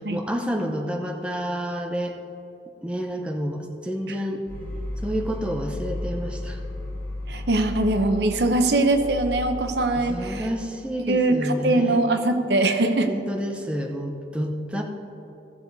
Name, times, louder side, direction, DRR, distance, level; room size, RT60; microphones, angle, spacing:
voice 1, 0.1-2.2 2.8-4.4 5.0-6.6 10.0-12.0 13.1-14.8, equal, 5° right, 1 dB, 0.7 m, -29 dB
sound 1, 4.5-10.5, left 1 dB, 10° left, 2.7 m, -34 dB
voice 2, 7.3-10.5 11.0-13.1, right 2 dB, 70° right, 6 dB, 0.8 m, -22 dB
16.5 x 7.0 x 4.0 m, 2.9 s
head